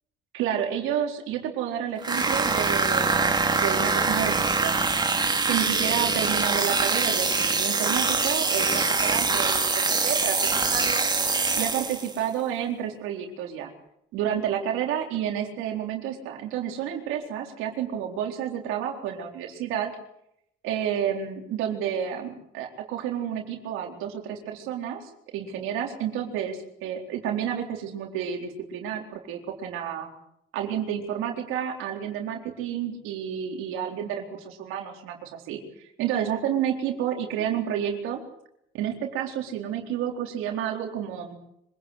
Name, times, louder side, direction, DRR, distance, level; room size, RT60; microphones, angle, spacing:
voice 1, 0.3-4.9 5.5-11.1 11.6-13.7 14.1-19.9 20.6-30.1 30.5-38.2 38.7-41.4, right 9 dB, 90° right, 2 dB, 4.0 m, -30 dB
sound 1, 2.0-12.2, right 4 dB, 20° right, 2.6 m, -24 dB
25.0 x 18.0 x 8.3 m, 0.76 s
cardioid pair, 115°, 20 cm